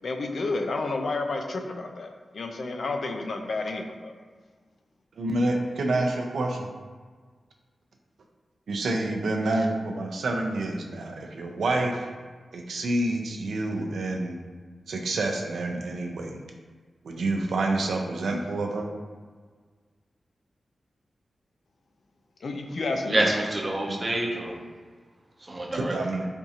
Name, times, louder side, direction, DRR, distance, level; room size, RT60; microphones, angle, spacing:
voice 1, 0.0-4.1 22.4-23.3, left 3 dB, 60° left, 4 dB, 0.3 m, -30 dB
voice 2, 5.2-6.7 8.7-12.1 12.5-14.4 14.9-16.4 17.0-18.8 25.7-26.3, right 2 dB, 80° right, 2 dB, 0.4 m, -28 dB
voice 3, 23.1-24.5 25.4-25.9, right 1 dB, 25° right, -1 dB, 0.5 m, -27 dB
4.3 x 2.4 x 2.7 m, 1.5 s
wide cardioid pair, 135°, 0 cm